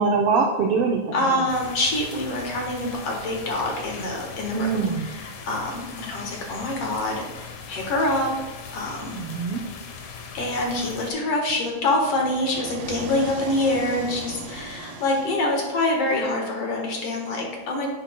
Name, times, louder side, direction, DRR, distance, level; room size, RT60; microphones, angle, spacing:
voice 1, 0.0-1.5 4.5-5.1 9.1-9.6, right 4 dB, 85° right, 1 dB, 1.2 m, -23 dB
voice 2, 1.1-4.7 5.0-8.3 8.7-9.2 10.1-17.9, left 1 dB, 60° left, 0 dB, 2.1 m, -26 dB
sound 1, 1.5-11.1, left 5 dB, 75° left, 2.3 m, -39 dB
sound 2, 11.5-15.9, right 2 dB, 65° right, 2.1 m, -38 dB
9.9 x 8.8 x 2.2 m, 1.3 s
omnidirectional pair, 3.4 m